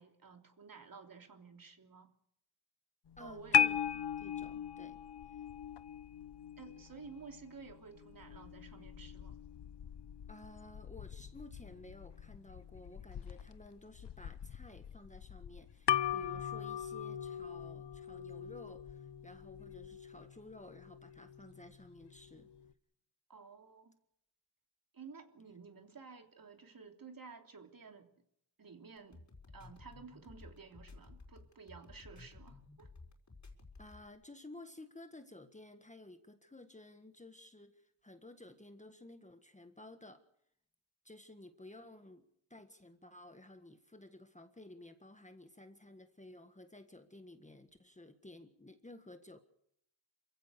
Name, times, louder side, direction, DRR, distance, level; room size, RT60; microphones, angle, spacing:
voice 1, 0.0-2.1 3.2-3.7 6.6-9.4 23.3-24.0 24.9-28.1 28.6-29.2 29.5-32.9, right 5 dB, 45° right, 4 dB, 3.3 m, -53 dB
sound 1, 3.1-22.7, left 9 dB, 55° left, 1.0 m, -39 dB
voice 2, 3.2-3.8 4.2-5.0 10.3-22.5 33.8-40.2 41.0-49.4, left 1 dB, 15° left, 8 dB, 1.6 m, -54 dB
sound 2, 29.0-34.1, left 3 dB, 35° left, 5.0 m, -54 dB
27.5 x 16.0 x 6.7 m, 0.73 s
wide cardioid pair, 105°, 48 cm